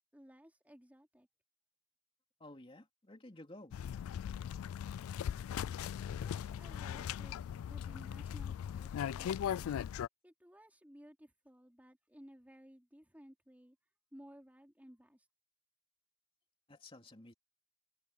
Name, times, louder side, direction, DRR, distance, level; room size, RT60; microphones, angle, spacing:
voice 1, 0.1-1.3 6.1-7.4 7.7-9.8 10.2-13.8 14.1-15.3, equal, 10° right, 3.7 m, -58 dB
voice 2, 2.4-3.7 16.7-17.3, left 1 dB, 25° left, 2.7 m, -53 dB
sound 1, 3.7-10.1, left 9 dB, 90° left, 0.3 m, -39 dB
head